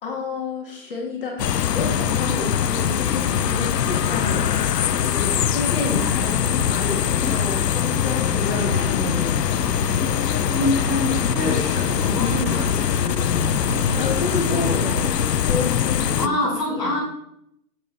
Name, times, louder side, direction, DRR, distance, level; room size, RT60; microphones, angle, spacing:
voice 1, 0.0-9.5 13.9-16.4 16.7-17.0, left 2 dB, 35° left, 0 dB, 1.9 m, -30 dB
sound 1, 1.4-16.3, left 9 dB, 90° left, 0.6 m, -22 dB
sound 2, 5.4-15.1, right 3 dB, 40° right, 0.7 m, -35 dB
voice 2, 10.5-13.5 16.1-17.0, left 2 dB, ahead, -13 dB, 1.4 m, -26 dB
7.4 x 6.9 x 4.0 m, 0.74 s
hypercardioid pair, 165°, 47 cm